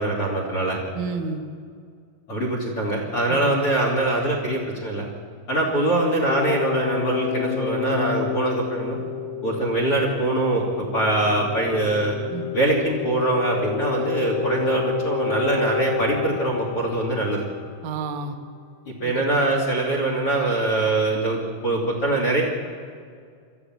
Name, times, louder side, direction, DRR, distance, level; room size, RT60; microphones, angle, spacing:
voice 1, 0.0-0.8 2.3-5.1 5.5-9.0 9.4-10.6 10.9-12.2 12.5-17.5 18.9-22.4, right 2 dB, 35° left, 1 dB, 3.2 m, -23 dB
voice 2, 0.9-1.5 3.3-3.4 12.3-12.5 17.8-18.4 19.0-19.5, right 4 dB, 60° right, 5 dB, 2.1 m, -31 dB
sound 1, 6.3-17.9, left 6 dB, 70° left, 3.2 m, -29 dB
24.5 x 14.0 x 9.4 m, 2.1 s
omnidirectional pair, 5.3 m